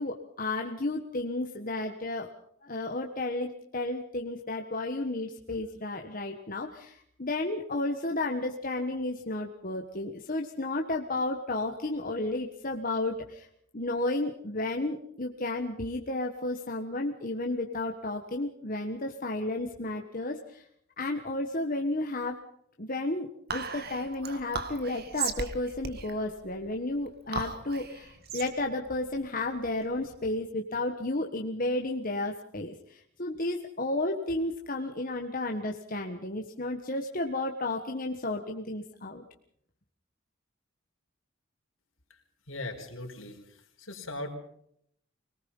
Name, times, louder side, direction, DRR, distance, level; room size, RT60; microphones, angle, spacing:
voice 1, 0.0-2.3 2.6-13.5 13.7-20.6 21.0-22.4 22.8-39.2, left 2 dB, 45° left, 3 dB, 1.5 m, -32 dB
Whispering, 23.5-30.2, right 4 dB, 50° right, 2.1 m, -37 dB
voice 2, 42.5-44.4, left 2 dB, 75° left, 3 dB, 4.5 m, -39 dB
25.5 x 19.0 x 5.5 m, 0.70 s
head